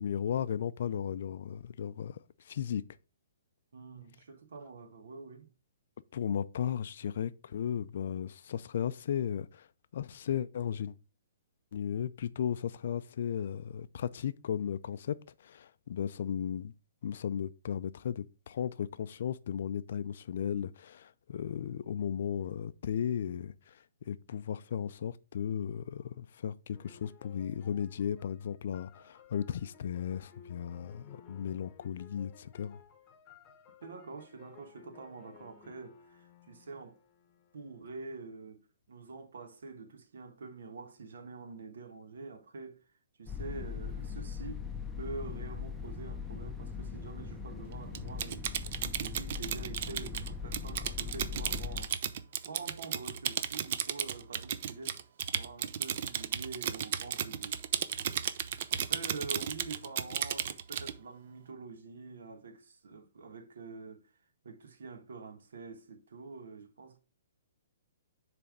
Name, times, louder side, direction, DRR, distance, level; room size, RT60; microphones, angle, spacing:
voice 1, 0.0-2.8 6.1-9.7 9.9-10.9 11.7-16.7 17.0-23.8 24.1-32.8, left 8 dB, 55° left, 0.4 m, -35 dB
voice 2, 3.7-5.5 33.8-37.0 37.5-42.8 43.2-44.6 45.0-55.0 55.3-57.6 58.7-64.0 64.4-67.0, right 4 dB, 80° right, 1.3 m, -46 dB
sound 1, 26.7-37.9, left 6 dB, 20° left, 0.9 m, -58 dB
sound 2, 43.3-51.9, left 6 dB, 5° left, 0.6 m, -40 dB
Typing, 47.9-60.9, right 9 dB, 45° right, 0.5 m, -34 dB
7.0 x 3.4 x 5.0 m
hypercardioid pair, 165°, 0 cm